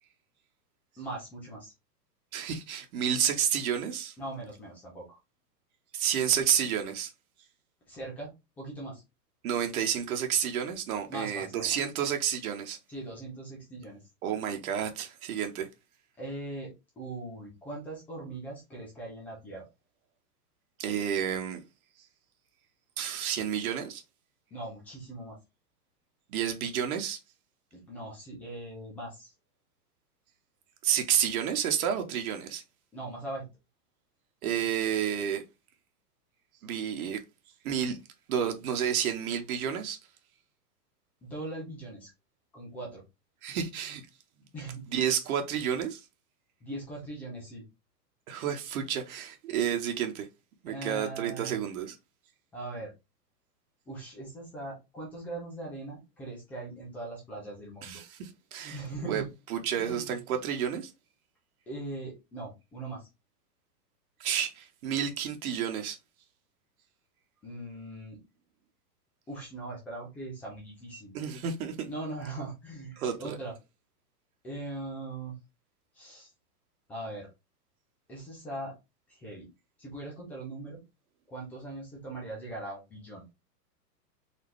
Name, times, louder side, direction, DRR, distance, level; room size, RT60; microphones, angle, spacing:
voice 1, 1.0-1.7 4.2-5.2 7.9-8.3 8.6-9.0 11.1-11.8 12.9-14.0 16.2-19.7 24.5-25.4 27.7-29.3 32.9-33.5 41.2-42.1 42.5-43.0 44.5-44.9 46.6-47.6 50.7-51.6 52.5-52.9 53.9-58.0 58.7-59.3 59.8-60.2 61.7-63.1 67.4-68.2 69.3-71.2 71.8-73.5 74.4-75.3 75.9-76.3 76.9-77.3 78.1-78.7 79.1-79.5 79.8-80.8 81.3-83.2, right 2 dB, 5° left, 0.3 m, -40 dB
voice 2, 2.3-4.1 5.9-7.1 9.4-12.8 14.2-15.7 20.8-21.6 23.0-24.0 26.3-27.2 30.8-32.6 34.4-35.4 36.6-37.2 37.6-38.0 38.3-40.0 43.4-44.0 44.9-46.0 48.3-50.3 50.6-52.0 57.8-59.2 59.5-60.9 64.2-66.0 71.1-71.8 73.0-73.4, right 9 dB, 60° right, 1.2 m, -30 dB
4.2 x 2.7 x 3.2 m
hypercardioid pair, 120°, 49 cm